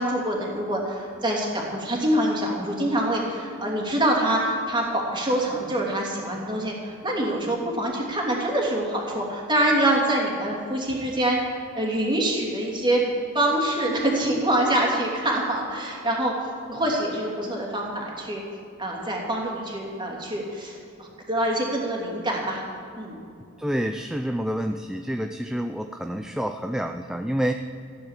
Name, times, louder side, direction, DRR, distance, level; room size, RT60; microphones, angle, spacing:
voice 1, 0.0-11.4 11.7-13.0 13.3-16.4 16.7-18.4 18.8-22.6 23.0-23.2, right 1 dB, 20° right, -2 dB, 3.0 m, -25 dB
voice 2, 23.6-27.5, equal, 5° right, 6 dB, 0.4 m, -28 dB
16.0 x 10.0 x 7.5 m, 2.5 s
head